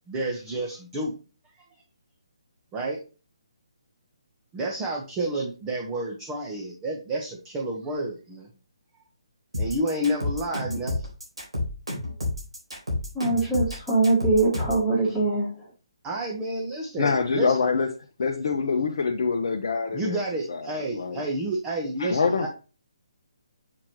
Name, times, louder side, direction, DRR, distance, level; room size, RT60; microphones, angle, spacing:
voice 1, 0.1-1.1 2.7-3.0 4.5-8.5 9.6-11.1 16.0-17.6 19.9-22.5, right 1 dB, 20° right, -1 dB, 1.2 m, -30 dB
sound 1, 9.5-14.9, left 2 dB, 90° right, 4.1 m, -30 dB
voice 2, 13.2-15.5, right 3 dB, 5° left, -8 dB, 1.7 m, -22 dB
voice 3, 17.0-17.9 18.2-20.2 20.5-21.2 22.0-22.5, left 5 dB, 60° left, 1 dB, 0.8 m, -25 dB
7.4 x 4.8 x 3.1 m, 0.34 s
figure-of-eight pair, 150°, 3 cm